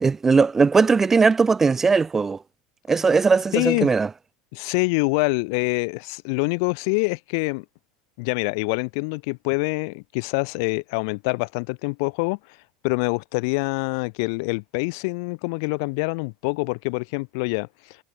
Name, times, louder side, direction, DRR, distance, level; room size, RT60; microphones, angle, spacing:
voice 1, 0.0-2.4 2.9-4.1, right 4 dB, 15° right, 0.5 m, -19 dB
voice 2, 3.5-3.9 4.5-7.6 8.2-12.4 12.8-18.0, left 31 dB, 65° left, 2.0 m, -25 dB
supercardioid pair, 140°, 2 cm